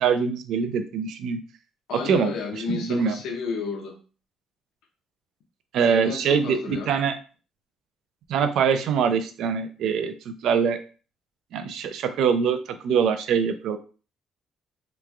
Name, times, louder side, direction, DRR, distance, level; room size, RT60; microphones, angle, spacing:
voice 1, 0.0-1.4 1.9-2.3 2.7-3.2 5.7-7.1 8.3-10.8 11.5-12.6 12.8-13.8, right 6 dB, 65° right, 9 dB, 0.4 m, -23 dB
voice 2, 1.9-3.9 5.9-6.9, left 5 dB, 70° left, 0 dB, 0.8 m, -32 dB
3.0 x 2.3 x 3.4 m, 0.37 s
cardioid pair, 150°, 0 cm